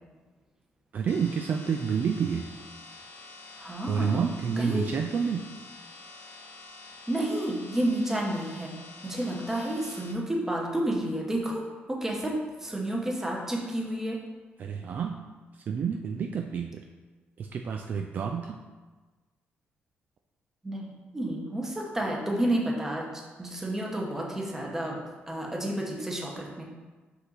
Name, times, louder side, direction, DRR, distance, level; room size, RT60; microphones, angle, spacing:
voice 1, 0.9-2.5 3.9-5.5 14.6-15.2 15.7-16.8 17.4-18.6, right 6 dB, 45° right, 4 dB, 0.3 m, -29 dB
sound 1, 1.1-10.1, left 3 dB, 55° left, 0.9 m, -47 dB
voice 2, 3.6-4.2 4.6-4.9 7.1-8.7 9.0-14.2 20.6-26.6, right 1 dB, 10° right, -1 dB, 1.0 m, -30 dB
6.0 x 5.5 x 4.0 m, 1.3 s
wide cardioid pair, 175°, 4 cm